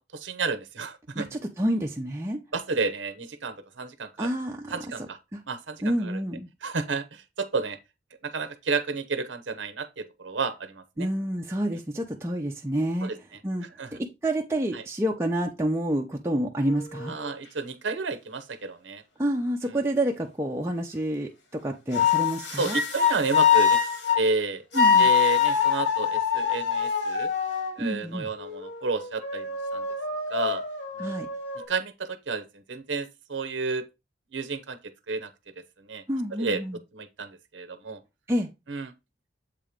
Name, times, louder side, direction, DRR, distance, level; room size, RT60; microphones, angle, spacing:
voice 1, 0.0-1.2 2.5-4.3 4.7-5.2 5.5-6.2 6.6-7.8 8.2-11.1 13.0-13.1 13.8-13.9 14.7-14.8 17.1-19.0 22.5-23.8 24.2-24.6 25.0-27.3 27.8-29.5 29.7-29.8 30.3-30.6 31.0-31.2 31.7-33.8 34.3-34.8 35.1-35.3 35.9-36.0 36.4-36.6 36.9-38.0 38.7-38.9, right 4 dB, 90° right, 0.8 m, -31 dB
voice 2, 1.1-2.4 4.2-5.1 5.3-5.4 5.8-6.5 11.0-13.1 13.4-17.2 19.2-22.8 24.7-25.1 27.8-28.3 31.0-31.3 36.1-36.8 38.3-38.5, right 1 dB, 15° right, 0.5 m, -28 dB
sound 1, 16.7-17.3 21.9-24.3 24.7-27.7 28.4-31.6, left 7 dB, 80° left, 1.5 m, -24 dB
7.5 x 2.9 x 5.0 m
head